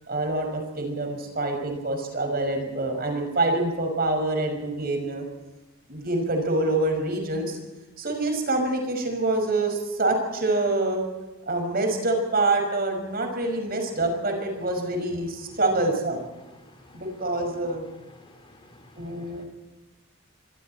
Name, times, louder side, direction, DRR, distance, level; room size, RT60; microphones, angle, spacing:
voice 1, 0.1-5.3 5.9-7.6 8.0-11.1 11.5-16.3 16.9-17.8 19.0-19.5, right 2 dB, 45° right, 4 dB, 5.9 m, -26 dB
voice 2, 16.6-17.0 18.2-19.4, left 1 dB, 25° left, 4 dB, 3.5 m, -53 dB
25.5 x 23.0 x 4.4 m, 1.1 s
head